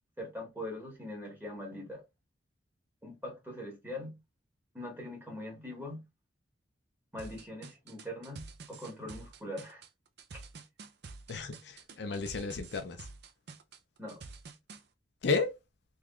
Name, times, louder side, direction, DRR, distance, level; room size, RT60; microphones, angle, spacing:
voice 1, 0.2-2.0 3.0-4.2 4.7-6.0 7.1-9.8 10.3-10.4 14.0-14.2, left 1 dB, 10° right, 1.5 m, -42 dB
sound 1, 7.2-14.8, right 4 dB, 55° right, 0.5 m, -48 dB
voice 2, 11.3-13.1 15.2-15.5, left 4 dB, 60° left, 0.5 m, -33 dB
3.6 x 3.1 x 2.3 m
head